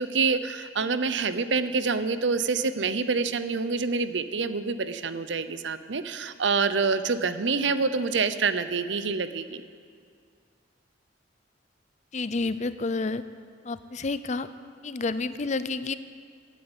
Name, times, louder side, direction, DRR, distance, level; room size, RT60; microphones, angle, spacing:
voice 1, 0.0-9.6, right 4 dB, 80° right, 12 dB, 0.7 m, -27 dB
voice 2, 12.1-13.2 13.6-14.5 14.8-15.9, left 3 dB, 40° left, 13 dB, 0.6 m, -29 dB
17.0 x 9.3 x 8.1 m, 2.1 s
head